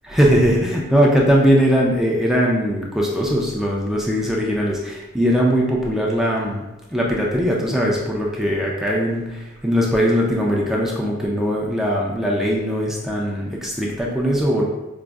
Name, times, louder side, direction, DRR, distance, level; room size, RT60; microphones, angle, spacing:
voice 1, 0.1-6.6 6.9-14.6, equal, ahead, -3 dB, 0.4 m, -20 dB
5.0 x 2.5 x 2.3 m, 1.0 s
head